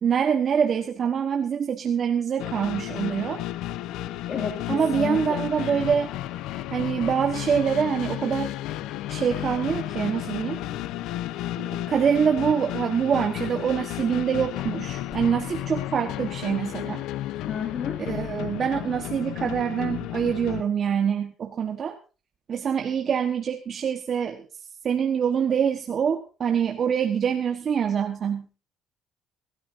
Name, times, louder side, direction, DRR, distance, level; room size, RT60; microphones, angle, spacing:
voice 1, 0.0-3.4 4.7-6.1 6.7-8.6 9.1-10.6 11.6-17.0 18.0-22.0 22.5-28.5, right 7 dB, 40° right, 4 dB, 1.3 m, -25 dB
sound 1, 2.4-20.6, left 14 dB, 80° left, 0.8 m, -33 dB
voice 2, 4.3-5.8 17.5-18.0, left 7 dB, 45° left, 0 dB, 2.6 m, -32 dB
sound 2, 14.9-15.9, left 3 dB, 20° left, 6.7 m, -47 dB
25.0 x 13.5 x 2.7 m, 0.33 s
cardioid pair, 130°, 0 cm